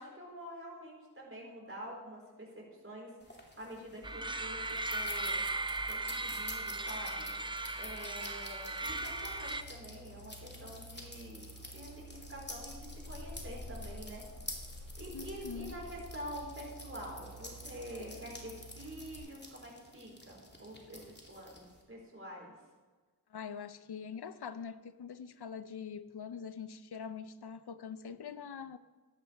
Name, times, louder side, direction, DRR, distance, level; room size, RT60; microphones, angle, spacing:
voice 1, 0.0-5.4 5.8-7.3 7.7-14.2 15.0-21.0 21.3-22.5, equal, 35° right, 4.4 m, -47 dB
sound 1, 3.2-21.8, left 1 dB, 25° left, 2.6 m, -50 dB
sound 2, 4.0-9.6, right 2 dB, 15° right, 0.6 m, -37 dB
sound 3, 8.9-19.2, equal, 45° left, 2.4 m, -50 dB
voice 2, 15.1-15.8 23.3-28.8, left 6 dB, 85° left, 0.6 m, -44 dB
14.5 x 11.0 x 3.4 m
wide cardioid pair, 50°, 38 cm